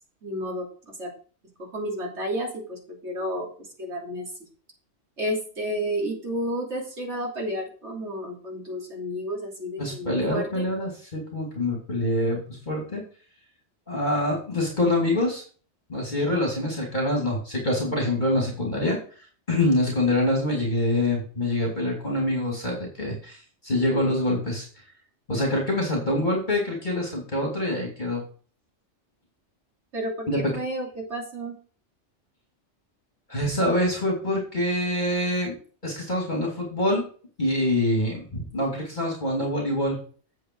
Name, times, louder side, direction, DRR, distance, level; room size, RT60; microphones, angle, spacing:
voice 1, 0.2-1.1 1.6-4.2 5.2-10.6 29.9-31.6, equal, 70° right, -2 dB, 3.5 m, -31 dB
voice 2, 9.8-12.4 12.7-13.0 13.9-15.4 15.9-19.0 19.5-23.4 23.6-24.7 25.3-28.2 30.3-30.5 33.3-35.5 35.8-37.0 37.4-40.0, left 1 dB, 40° left, -1 dB, 2.8 m, -25 dB
8.7 x 7.7 x 4.6 m, 0.41 s
omnidirectional pair, 1.2 m